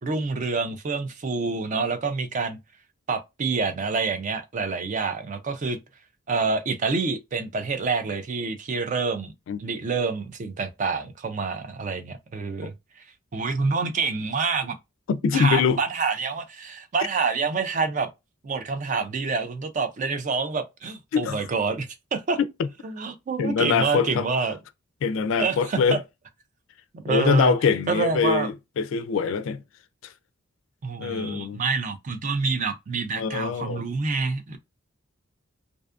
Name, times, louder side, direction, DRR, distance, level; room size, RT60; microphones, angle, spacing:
voice 1, 0.0-2.6 3.1-5.8 6.3-9.3 9.6-13.0 13.3-14.8 15.3-18.1 18.4-22.4 22.8-24.6 25.4-26.0 26.9-27.5 27.9-28.5 30.8-34.6, right 4 dB, 35° right, 0.4 m, -27 dB
voice 2, 15.1-15.8 21.1-21.5 22.6-22.7 23.4-24.3 25.0-26.0 27.1-29.6 30.0-30.1 31.0-31.6 33.2-33.9, left 5 dB, 65° left, 0.3 m, -23 dB
2.5 x 2.3 x 2.4 m
head